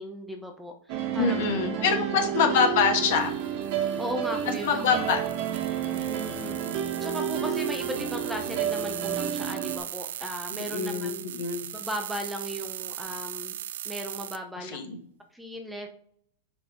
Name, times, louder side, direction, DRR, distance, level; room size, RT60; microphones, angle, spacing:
voice 1, 0.0-1.4 1.7-2.6 4.0-4.9 5.8-11.2 11.7-13.6 13.8-14.8 15.3-15.9, equal, 5° right, 4 dB, 0.6 m, -37 dB
sound 1, 0.9-9.8, right 9 dB, 45° right, 1.3 m, -30 dB
voice 2, 1.2-3.3 4.6-5.2 10.5-11.6 14.6-15.0, left 6 dB, 60° left, 4 dB, 1.5 m, -25 dB
sound 2, 3.1-14.4, right 11 dB, 80° right, 0.4 m, -39 dB
5.7 x 5.3 x 3.7 m, 0.62 s
supercardioid pair, 155°, 0 cm